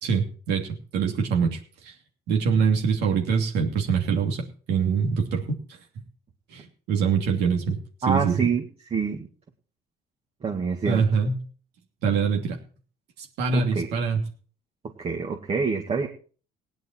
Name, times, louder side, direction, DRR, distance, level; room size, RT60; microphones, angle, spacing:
voice 1, 0.0-1.9 2.3-5.6 6.5-7.8 8.1-8.5 10.8-11.4 12.0-12.6 13.2-14.2, right 6 dB, 85° right, 1 dB, 2.9 m, -24 dB
voice 2, 8.0-8.6 8.9-9.3 10.4-11.0 13.5-13.9 14.8-16.1, right 5 dB, 35° right, 1 dB, 2.0 m, -26 dB
17.0 x 10.5 x 4.5 m, 0.40 s
cardioid pair, 110°, 17 cm